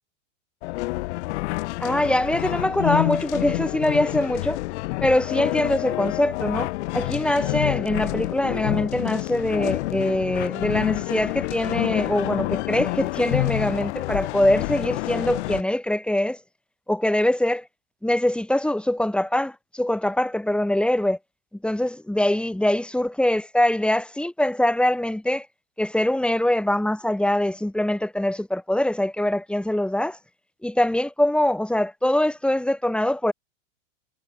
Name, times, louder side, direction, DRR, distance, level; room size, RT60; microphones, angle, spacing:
sound 1, 0.6-15.6, left 21 dB, 60° left, 7.2 m, -28 dB
voice 1, 1.8-4.6 5.0-16.4 16.9-17.7 18.0-21.2 21.6-25.5 25.8-30.2 30.6-33.3, left 1 dB, 5° left, 4.7 m, -23 dB
hypercardioid pair, 105°, 39 cm